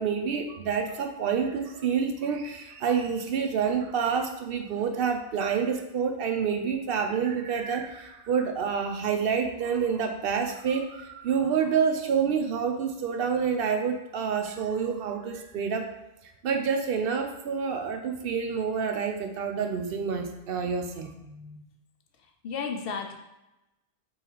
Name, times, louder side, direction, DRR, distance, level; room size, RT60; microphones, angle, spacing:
voice 1, 0.0-15.9 16.4-21.1, right 6 dB, 70° right, 5 dB, 0.7 m, -28 dB
voice 2, 21.2-21.6 22.2-23.1, left 5 dB, 70° left, 4 dB, 0.8 m, -35 dB
3.6 x 3.1 x 4.5 m, 0.93 s
omnidirectional pair, 1.0 m